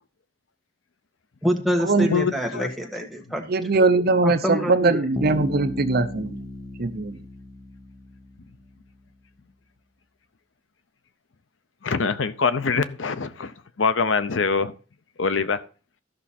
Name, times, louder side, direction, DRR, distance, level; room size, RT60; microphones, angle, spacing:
voice 1, 1.4-3.4 4.2-5.0, equal, ahead, 1.6 m, -26 dB
voice 2, 2.1-2.7 11.8-14.7 15.2-15.6, left 5 dB, 85° left, 0.7 m, -24 dB
voice 3, 3.5-6.5 6.8-7.2, right 3 dB, 55° right, 0.8 m, -21 dB
Bass guitar, 5.1-8.9, left 1 dB, 20° left, 0.9 m, -36 dB
13.0 x 6.0 x 4.3 m
head